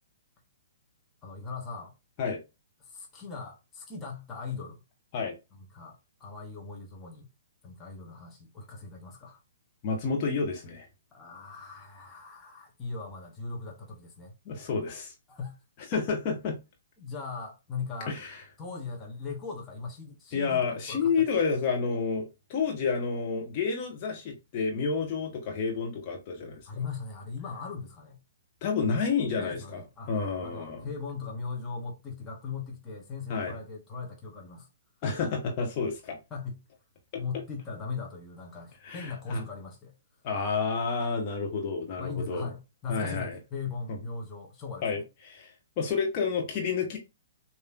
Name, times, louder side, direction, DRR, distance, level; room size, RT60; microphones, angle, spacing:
voice 1, 1.2-1.9 2.8-4.8 5.5-7.3 7.6-9.4 11.1-14.3 15.3-15.6 17.0-18.2 18.6-21.2 26.7-28.2 28.8-29.0 29.4-30.1 30.4-34.7 36.3-36.6 37.1-39.9 42.0-45.0, left 4 dB, 15° left, 1.3 m, -39 dB
voice 2, 9.8-10.9 14.4-15.1 15.9-16.5 18.1-18.4 20.3-26.6 28.6-29.8 30.1-30.8 33.3-33.6 35.0-36.2 37.1-37.2 38.8-39.4 40.2-42.5 42.9-43.4 43.9-44.0 44.8-47.0, left 5 dB, 35° left, 1.3 m, -30 dB
6.6 x 3.0 x 2.5 m
figure-of-eight pair, 120°, 0 cm